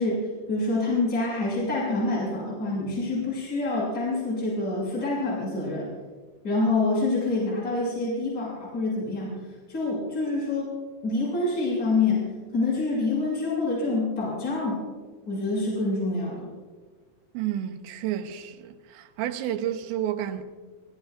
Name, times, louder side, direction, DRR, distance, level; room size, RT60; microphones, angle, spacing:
voice 1, 0.0-5.9 6.4-9.4 9.7-10.7 11.0-14.8 15.3-16.5, left 2 dB, 25° left, 7.5 m, -26 dB
voice 2, 17.3-20.4, right 11 dB, 75° right, 2.6 m, -31 dB
30.0 x 17.5 x 2.6 m
omnidirectional pair, 4.7 m